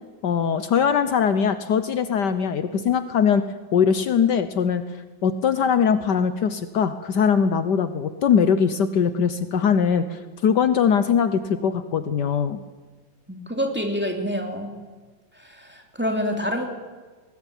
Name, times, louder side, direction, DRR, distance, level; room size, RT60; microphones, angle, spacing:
voice 1, 0.2-3.4 3.7-4.8 5.2-12.6, left 7 dB, 65° left, 11 dB, 1.5 m, -21 dB
voice 2, 13.3-14.7 15.3-16.7, equal, 5° right, 2 dB, 3.1 m, -27 dB
22.0 x 19.0 x 9.1 m, 1.4 s
omnidirectional pair, 2.0 m